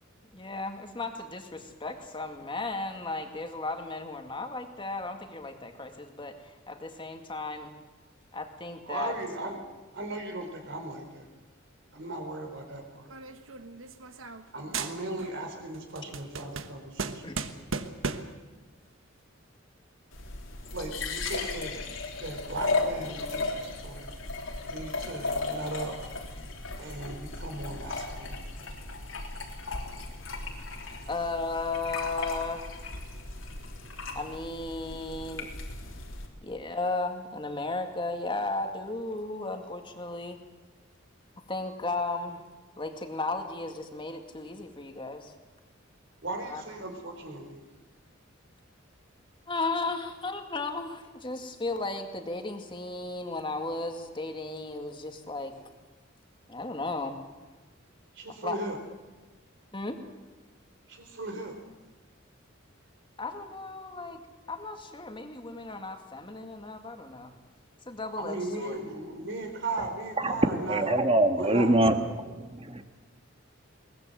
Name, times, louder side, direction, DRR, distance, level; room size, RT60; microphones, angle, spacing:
voice 1, 0.3-7.7 8.3-9.1 17.2-17.7 31.1-32.7 34.1-35.5 36.4-40.4 41.5-42.4 42.8-45.3 46.4-46.6 49.5-55.5 56.5-57.2 58.4-58.6 59.7-60.0 63.2-64.2 64.5-67.3 67.9-68.8, left 3 dB, 25° left, 5 dB, 2.2 m, -35 dB
voice 2, 8.9-9.6 9.9-11.3 11.9-13.2 14.5-17.4 20.7-21.8 22.2-24.1 24.7-26.0 26.8-28.4 46.2-47.6 58.1-58.8 60.9-61.6 68.2-70.9 71.3-72.0, right 2 dB, 65° right, 5 dB, 4.0 m, -37 dB
sound 1, 13.1-14.5 14.7-15.4 15.7-18.4, right 4 dB, 85° right, 1.3 m, -36 dB
sound 2, 20.1-36.3, left 3 dB, 85° left, 3.5 m, -36 dB
voice 3, 70.7-71.9 72.6-72.8, right 1 dB, 30° right, 6 dB, 1.6 m, -23 dB
22.0 x 19.5 x 7.7 m, 1.2 s
head